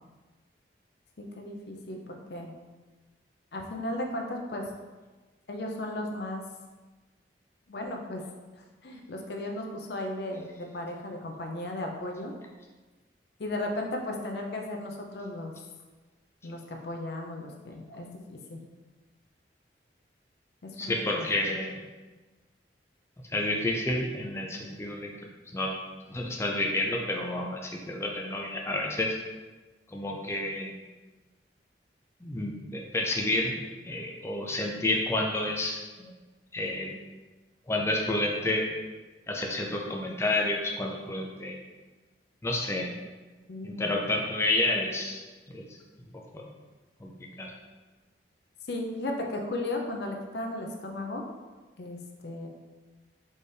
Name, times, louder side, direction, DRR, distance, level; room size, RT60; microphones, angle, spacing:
voice 1, 1.2-2.5 3.5-4.6 5.5-6.4 7.7-8.2 8.8-12.3 13.4-15.5 16.4-18.6 20.6-21.5 43.5-43.9 48.7-51.2 51.8-52.5, left 1 dB, 65° left, 1 dB, 0.5 m, -35 dB
voice 2, 20.8-21.8 23.3-25.1 25.5-25.8 26.1-29.1 29.9-30.7 32.2-36.1 36.5-36.9 37.7-38.7 39.3-41.5 42.4-42.9 43.6-45.2 45.5-45.6 46.3-46.4 47.0-47.1 47.4-47.5, left 2 dB, 15° left, 0 dB, 0.4 m, -30 dB
4.2 x 3.4 x 3.3 m, 1.3 s
head